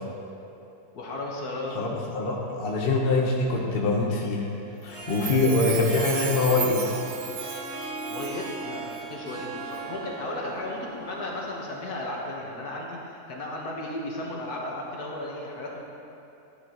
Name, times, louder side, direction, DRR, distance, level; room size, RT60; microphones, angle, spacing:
voice 1, 0.9-1.8 8.1-15.8, left 1 dB, 70° left, -2 dB, 1.9 m, -34 dB
voice 2, 1.7-4.5 4.8-6.8, left 3 dB, 40° left, -2 dB, 1.2 m, -24 dB
Harp, 4.7-12.1, right 3 dB, 65° right, 2.9 m, -39 dB
Chime, 5.0-8.6 8.9-9.0, right 9 dB, 85° right, 0.5 m, -36 dB
12.5 x 9.7 x 3.0 m, 2.8 s
omnidirectional pair, 1.7 m